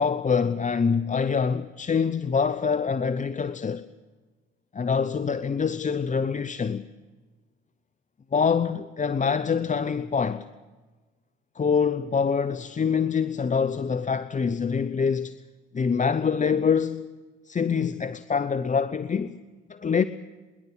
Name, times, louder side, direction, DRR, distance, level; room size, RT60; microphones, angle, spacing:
voice 1, 0.0-3.9 4.7-6.9 8.3-10.5 11.6-15.4 15.7-17.0 17.5-19.4 19.7-20.0, left 6 dB, 25° left, 0.8 m, -25 dB
25.5 x 11.5 x 10.0 m
hypercardioid pair, 60°, 29 cm